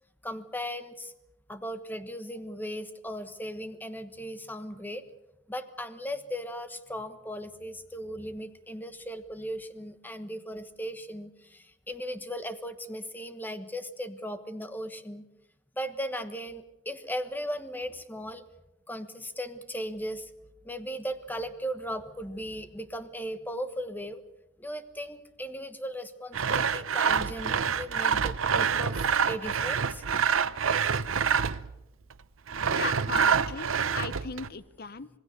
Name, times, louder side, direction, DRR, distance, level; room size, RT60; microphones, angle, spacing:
voice 1, 0.2-1.1 1.5-5.0 5.5-15.3 15.8-18.4 18.9-20.3 20.6-24.2 24.6-30.0, equal, 10° left, 10 dB, 1.2 m, -37 dB
Sawing, 26.3-31.7 32.5-34.5, right 6 dB, 75° right, 0.8 m, -27 dB
voice 2, 32.7-35.1, left 5 dB, 50° left, 15 dB, 0.9 m, -37 dB
26.5 x 19.5 x 6.7 m, 0.92 s
head